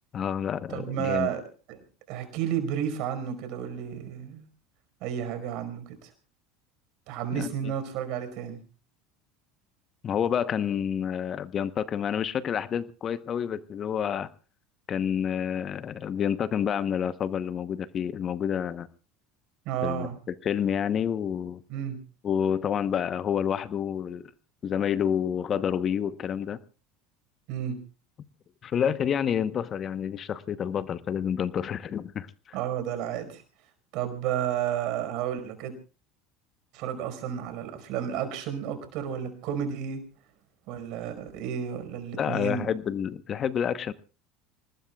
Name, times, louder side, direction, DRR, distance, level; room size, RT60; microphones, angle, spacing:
voice 1, 0.1-1.3 7.3-7.7 10.0-14.3 14.9-18.9 19.8-21.6 22.2-24.3 24.6-26.6 28.6-32.3 42.1-43.9, left 8 dB, 40° left, 1.0 m, -29 dB
voice 2, 0.7-1.4 2.1-4.4 5.0-6.1 7.1-8.6 19.6-20.2 21.7-22.0 27.5-27.8 32.5-33.4 33.9-35.7 36.7-40.0 40.7-42.7, right 9 dB, 65° right, 5.1 m, -31 dB
27.0 x 19.5 x 2.4 m
hypercardioid pair, 85°, 0 cm